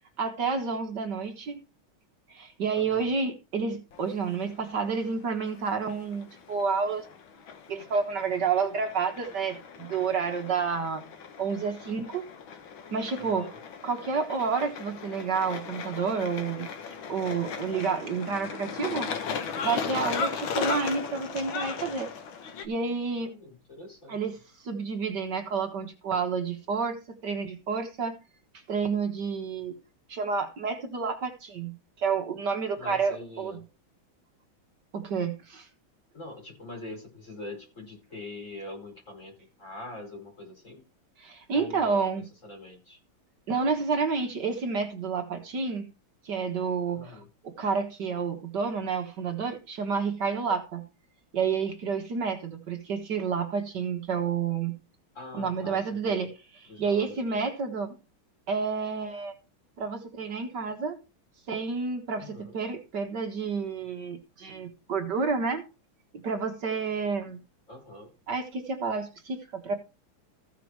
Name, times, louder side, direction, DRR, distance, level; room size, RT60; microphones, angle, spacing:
voice 1, 0.2-1.6 2.3-7.1 7.7-11.0 11.4-12.2 12.9-13.5 13.8-16.7 17.1-19.1 19.6-22.1 22.6-23.3 24.1-24.4 24.6-27.0 27.2-28.2 28.7-29.8 30.1-33.6 34.9-35.7 41.2-42.3 43.5-45.9 46.3-50.8 51.3-54.8 55.3-56.3 56.8-58.0 58.5-59.3 59.8-61.0 61.5-65.7 66.1-67.4 68.3-69.7, right 5 dB, 60° right, 2.0 m, -30 dB
voice 2, 2.7-3.1 13.2-13.6 19.9-20.2 23.2-24.3 32.8-33.6 36.1-40.8 41.5-43.0 46.9-47.3 55.1-56.3 56.7-57.4 62.2-62.5 67.7-68.1, left 2 dB, 35° left, 5.8 m, -44 dB
sound 1, 3.9-22.7, left 6 dB, 80° left, 2.0 m, -37 dB
15.0 x 5.9 x 4.7 m
omnidirectional pair, 2.2 m